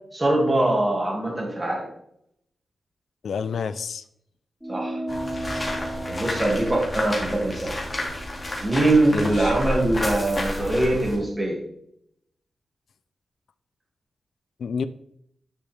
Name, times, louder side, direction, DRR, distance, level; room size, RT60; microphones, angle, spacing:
voice 1, 0.1-1.9 4.7-5.0 6.1-7.8 8.6-11.6, right 1 dB, 20° right, -1 dB, 2.2 m, -22 dB
voice 2, 3.2-4.0 9.1-9.6 14.6-14.9, left 6 dB, 75° left, 13 dB, 0.4 m, -29 dB
sound 1, 4.6-9.4, right 1 dB, ahead, 0.5 m, -36 dB
sound 2, 5.1-11.2, left 1 dB, 25° left, 2.3 m, -31 dB
10.0 x 5.4 x 3.4 m, 0.72 s
wide cardioid pair, 115°, 0 cm